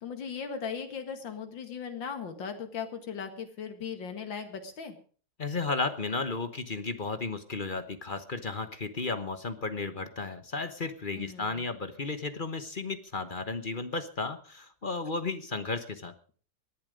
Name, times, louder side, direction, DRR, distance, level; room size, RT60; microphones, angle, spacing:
voice 1, 0.0-5.0 11.1-11.6, left 6 dB, 80° left, 6 dB, 2.6 m, -38 dB
voice 2, 5.4-16.1, left 3 dB, 35° left, 10 dB, 1.0 m, -34 dB
18.5 x 11.0 x 5.1 m, 0.42 s
omnidirectional pair, 2.0 m